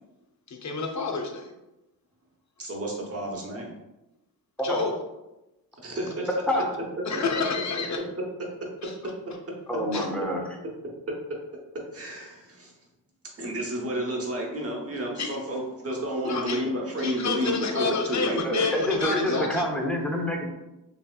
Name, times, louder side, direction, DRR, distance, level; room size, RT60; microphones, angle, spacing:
voice 1, 0.5-1.5 4.6-4.9 7.1-8.0 8.8-8.9 9.9-10.1 15.2-15.3 16.2-16.6 17.0-19.6, left 4 dB, 40° left, 3 dB, 0.6 m, -29 dB
voice 2, 2.6-3.7 5.8-6.3 7.1-7.2 11.9-12.7 13.4-18.6 19.2-19.4, right 1 dB, 35° right, -1 dB, 0.9 m, -31 dB
voice 3, 9.7-10.4 18.4-20.4, left 1 dB, 5° left, -1 dB, 0.7 m, -27 dB
3.0 x 2.8 x 2.3 m, 0.97 s
cardioid pair, 60°, 43 cm